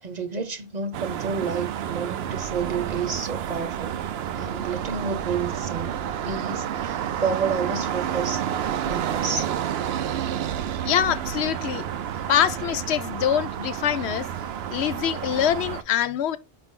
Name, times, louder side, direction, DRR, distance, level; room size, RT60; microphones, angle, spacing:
voice 1, 0.0-4.0 4.3-5.9 6.2-8.4 8.8-9.5, right 5 dB, 45° right, 0.9 m, -30 dB
sound 1, 0.9-15.8, right 9 dB, 75° right, 0.8 m, -30 dB
voice 2, 10.8-11.9 12.3-14.3 14.7-16.4, left 10 dB, 90° left, 0.9 m, -24 dB
5.2 x 4.8 x 3.7 m
omnidirectional pair, 1.1 m